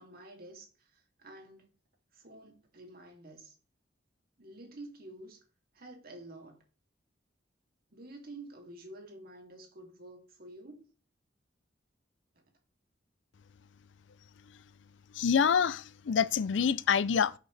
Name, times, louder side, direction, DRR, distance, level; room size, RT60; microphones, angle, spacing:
voice 1, 0.0-1.7 2.1-3.6 4.4-5.4 5.7-6.6 7.9-10.9, right 2 dB, 55° right, 2.7 m, -49 dB
voice 2, 15.1-17.3, left 7 dB, 80° left, 0.4 m, -26 dB
11.0 x 6.7 x 3.3 m
head